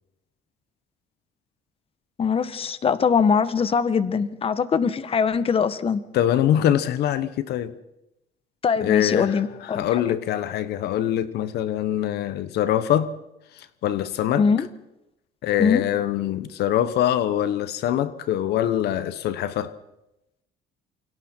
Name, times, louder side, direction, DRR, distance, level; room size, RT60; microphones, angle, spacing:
voice 1, 2.2-6.0 8.6-9.8 14.4-14.7 15.6-15.8, left 6 dB, 35° left, 1.2 m, -22 dB
voice 2, 6.1-7.7 8.8-13.1 13.5-14.5 15.4-19.8, left 11 dB, 75° left, 1.1 m, -24 dB
28.0 x 24.0 x 4.5 m
cardioid pair, 110°, 17 cm